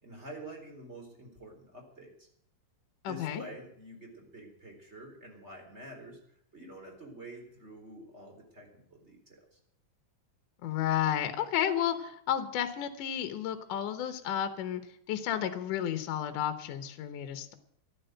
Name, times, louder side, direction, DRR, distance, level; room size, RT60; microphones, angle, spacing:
voice 1, 0.0-2.3 3.1-6.2 6.5-9.6, right 1 dB, 20° right, 2 dB, 3.9 m, -48 dB
voice 2, 3.0-3.4 10.6-14.8 15.1-17.6, left 10 dB, 70° left, 9 dB, 2.5 m, -32 dB
14.0 x 11.5 x 7.8 m, 0.69 s
omnidirectional pair, 4.2 m